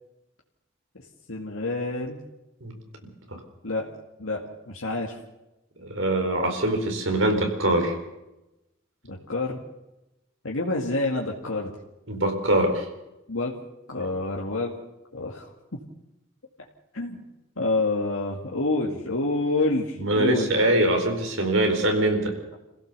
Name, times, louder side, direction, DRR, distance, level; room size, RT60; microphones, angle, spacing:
voice 1, 1.3-2.2 3.6-3.8 4.2-4.4 4.7-5.2 9.0-9.6 10.4-11.7 13.3-13.5 13.9-14.7 15.1-15.5 16.9-17.2 17.6-20.5, left 2 dB, 80° left, -1 dB, 2.3 m, -27 dB
voice 2, 5.8-7.9 12.1-12.9 20.0-22.3, right 1 dB, 70° right, 4 dB, 4.5 m, -23 dB
27.0 x 16.5 x 6.8 m, 0.95 s
head